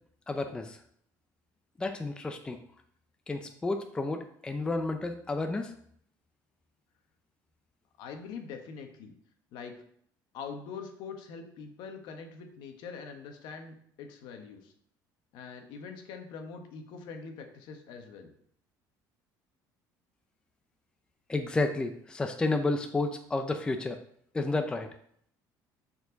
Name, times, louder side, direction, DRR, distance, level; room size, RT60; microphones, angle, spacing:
voice 1, 0.3-0.8 1.8-2.6 3.3-5.7 21.3-24.0 24.3-24.9, left 2 dB, 10° left, 6 dB, 0.5 m, -31 dB
voice 2, 8.0-9.1 9.5-9.8 10.3-14.7 15.3-18.3, left 5 dB, 70° left, 5 dB, 1.2 m, -43 dB
6.9 x 4.5 x 5.1 m, 0.66 s
cardioid pair, 145°, 8 cm